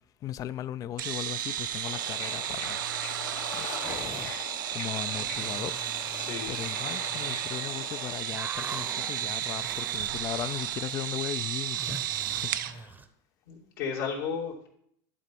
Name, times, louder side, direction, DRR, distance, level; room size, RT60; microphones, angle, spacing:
voice 1, 0.2-2.8 3.6-4.3 4.7-5.7 6.5-12.0 12.3-12.9, left 11 dB, 35° left, 0.3 m, -37 dB
sound 1, 1.0-12.7, right 11 dB, 85° right, 0.5 m, -33 dB
Bird / Ocean, 1.8-8.2, left 9 dB, 55° left, 0.9 m, -42 dB
sound 2, 3.8-4.4 4.9-7.6 7.9-10.8 11.1-13.1, right 3 dB, 15° right, 0.7 m, -44 dB
voice 2, 6.2-6.6 12.1-12.2 13.5-14.7, left 6 dB, 75° left, 2.7 m, -34 dB
11.5 x 4.1 x 4.6 m
supercardioid pair, 110°, 10 cm